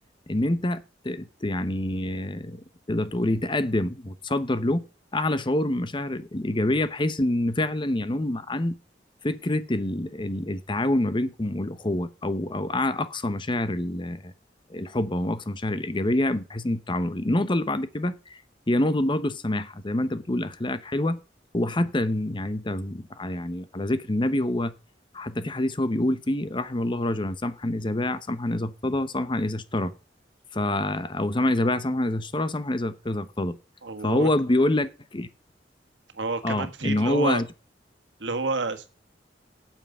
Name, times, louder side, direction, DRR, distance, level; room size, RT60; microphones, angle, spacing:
voice 1, 0.3-4.8 5.1-8.8 9.2-14.3 14.7-18.4 18.7-21.2 21.5-24.7 25.1-29.9 30.5-33.6 34.0-35.3 36.4-37.5, left 1 dB, 25° left, 0.8 m, -26 dB
voice 2, 33.8-34.3 36.1-37.4 38.2-39.0, right 3 dB, 85° right, 1.6 m, -29 dB
9.0 x 7.3 x 6.6 m
head